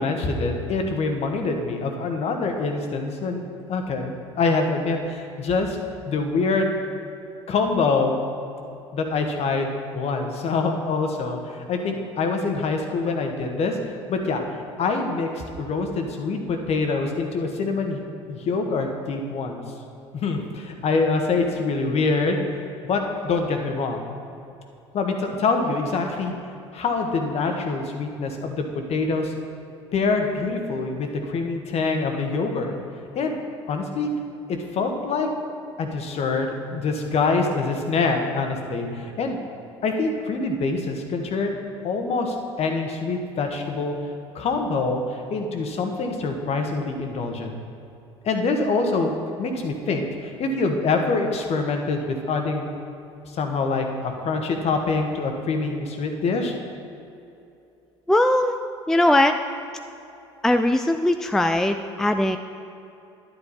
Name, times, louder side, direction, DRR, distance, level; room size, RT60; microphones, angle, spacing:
voice 1, 0.0-3.4 3.7-5.8 6.0-6.7 7.5-8.2 8.9-13.8 14.1-14.4 14.8-19.6 20.1-22.4 22.8-24.1 24.9-26.3 26.7-29.3 29.9-32.8 33.1-33.4 33.7-34.1 34.5-35.3 35.8-39.4 39.8-41.6 41.8-43.9 44.3-47.6 48.2-49.1 49.4-52.7 53.3-56.5, left 3 dB, 45° left, 4 dB, 1.5 m, -25 dB
voice 2, 58.1-58.6 58.9-59.4 60.4-62.4, left 1 dB, 5° left, 7 dB, 0.4 m, -20 dB
11.0 x 10.0 x 4.2 m, 2.7 s
hypercardioid pair, 65°, 15 cm